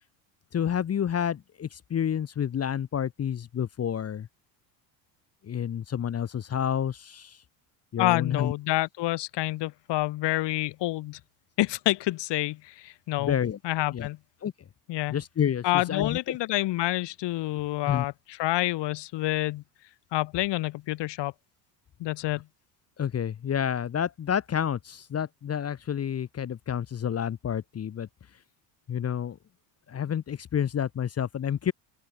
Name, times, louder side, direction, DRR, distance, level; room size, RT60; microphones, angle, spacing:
voice 1, 0.5-4.3 5.4-7.4 7.9-8.5 13.2-13.6 13.9-14.1 14.4-14.5 15.1-16.4 17.8-18.0 23.0-28.1 28.9-29.4 29.9-31.7, left 9 dB, 30° left, 1.3 m, -29 dB
voice 2, 8.0-11.2 11.6-13.4 13.6-14.2 14.9-15.1 15.6-18.1 18.4-19.6 20.1-21.3 22.0-22.4, left 17 dB, 60° left, 2.5 m, -28 dB
open air
supercardioid pair, 95°, 48 cm